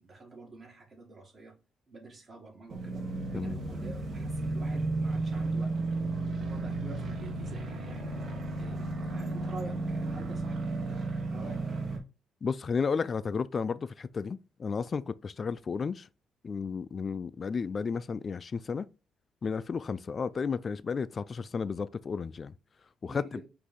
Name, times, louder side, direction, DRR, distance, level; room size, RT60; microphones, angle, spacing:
voice 1, 0.0-1.5 1.9-5.8 6.3-8.2 8.6-11.9 23.1-23.5, right 2 dB, 40° right, 1.7 m, -48 dB
sound 1, 2.7-12.0, right 2 dB, 60° right, 1.2 m, -33 dB
voice 2, 12.4-16.1 16.4-18.9 19.4-22.5 23.0-23.4, left 5 dB, 40° left, 0.3 m, -33 dB
5.1 x 2.7 x 3.6 m
cardioid pair, 90°, 0 cm